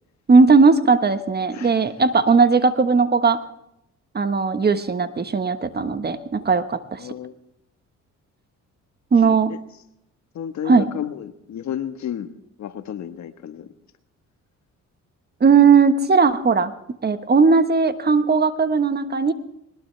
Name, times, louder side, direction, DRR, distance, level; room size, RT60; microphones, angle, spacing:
voice 1, 0.3-3.4 4.1-7.0 9.1-9.5 10.6-10.9 15.4-16.7 17.0-19.3, right 4 dB, 35° right, 10 dB, 1.4 m, -17 dB
voice 2, 7.0-7.3 9.2-9.6 10.3-12.3 12.6-13.7, left 9 dB, 65° left, 9 dB, 1.5 m, -32 dB
21.0 x 20.0 x 3.4 m, 0.79 s
cardioid pair, 90°, 30 cm